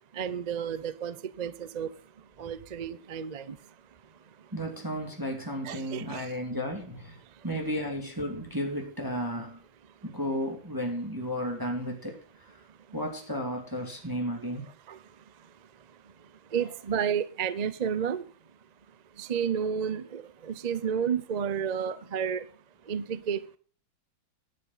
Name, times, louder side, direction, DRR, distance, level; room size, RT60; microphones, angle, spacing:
voice 1, 0.1-1.9 2.4-3.6 5.6-6.3 14.9-15.0 16.5-18.2 19.2-22.4 22.9-23.4, right 7 dB, 85° right, 15 dB, 0.3 m, -31 dB
voice 2, 4.5-9.6 10.0-12.6 12.9-14.7, equal, 10° right, 1 dB, 2.6 m, -33 dB
12.5 x 9.8 x 3.9 m, 0.41 s
omnidirectional pair, 2.1 m